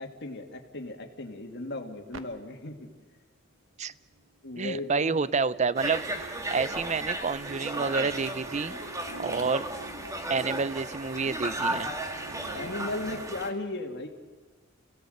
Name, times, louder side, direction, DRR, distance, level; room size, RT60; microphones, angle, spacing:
voice 1, 0.0-2.9 4.4-5.2 9.1-9.5 12.5-14.1, left 2 dB, 60° left, 3 dB, 2.3 m, -36 dB
sound 1, 2.1-2.2 4.1-13.3, right 2 dB, 75° right, 1.4 m, -47 dB
voice 2, 4.6-8.7 9.2-9.7 10.3-11.9, right 4 dB, 35° right, 17 dB, 0.6 m, -29 dB
Conversation, 5.7-13.5, right 1 dB, 15° right, 1.9 m, -35 dB
29.0 x 17.0 x 8.0 m, 1.4 s
head